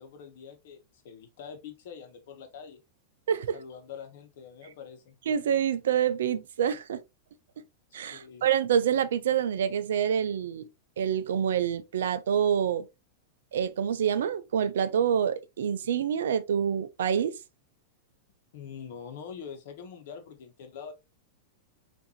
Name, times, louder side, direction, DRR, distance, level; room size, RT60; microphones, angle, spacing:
voice 1, 0.0-2.8 3.5-5.2 8.1-8.5 18.5-20.9, left 7 dB, 65° left, 1.0 m, -44 dB
voice 2, 5.3-7.0 7.9-10.6 11.0-12.8 13.5-17.4, right 8 dB, 75° right, 0.4 m, -27 dB
3.7 x 2.5 x 2.8 m
hypercardioid pair, 105°, 0 cm